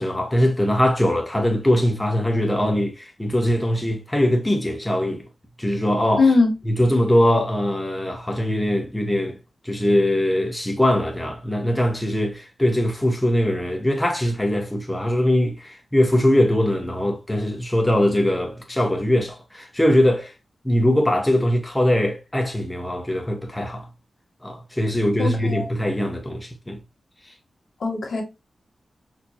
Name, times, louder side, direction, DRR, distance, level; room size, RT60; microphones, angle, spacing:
voice 1, 0.0-5.2 5.6-6.3 6.6-9.4 9.6-20.3 20.6-23.9 24.4-26.8, left 1 dB, 10° left, 0.8 m, -21 dB
voice 2, 6.2-6.5 25.2-25.7 27.8-28.2, left 3 dB, 70° left, 1.4 m, -20 dB
4.4 x 2.6 x 2.7 m
wide cardioid pair, 115°, 0 cm